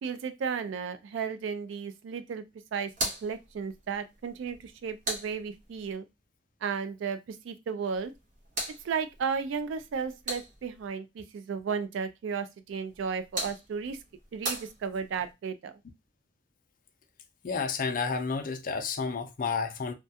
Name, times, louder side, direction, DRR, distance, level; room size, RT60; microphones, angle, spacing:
voice 1, 0.0-2.4 2.7-2.9 3.2-6.1 6.6-8.1 8.8-14.0 14.3-15.7, right 6 dB, 80° right, 0.3 m, -34 dB
sound 1, 2.9-5.9 7.9-10.9 12.9-15.3, right 1 dB, 45° right, 0.8 m, -39 dB
voice 2, 17.4-19.9, left 5 dB, 45° left, 0.4 m, -31 dB
2.3 x 2.2 x 2.7 m
head